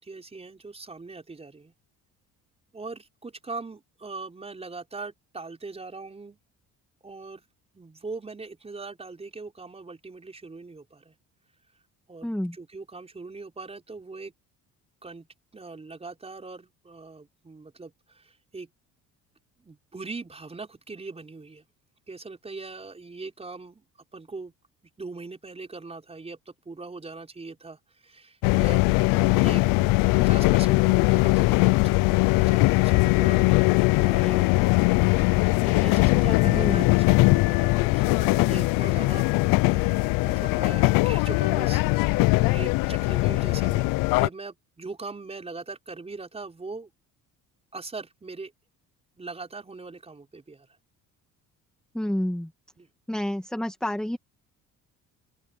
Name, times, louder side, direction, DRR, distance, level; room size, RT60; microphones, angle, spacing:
voice 1, 0.0-1.7 2.7-6.4 7.0-7.4 7.7-11.1 12.1-14.3 15.0-15.3 15.5-18.7 19.6-21.6 22.1-23.8 24.1-24.5 25.0-28.8 29.3-29.6 30.2-39.3 39.7-43.9 44.2-46.9 47.7-48.5 49.2-50.7 52.8-52.9, right 3 dB, 20° right, 5.6 m, -40 dB
voice 2, 12.2-12.5 36.4-36.8 51.9-52.5 53.1-54.2, left 1 dB, ahead, 1.7 m, -29 dB
sound 1, 28.4-44.3, left 23 dB, 85° left, 0.5 m, -21 dB
open air
cardioid pair, 120°, 32 cm